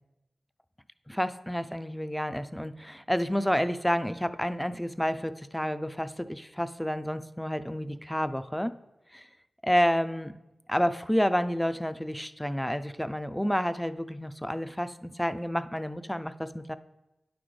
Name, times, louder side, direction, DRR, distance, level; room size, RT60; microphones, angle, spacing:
voice 1, 1.1-8.7 9.1-9.2 9.6-10.4 10.7-16.8, equal, 5° left, 12 dB, 0.3 m, -29 dB
9.8 x 6.1 x 3.2 m, 0.98 s
wide cardioid pair, 60°, 0 cm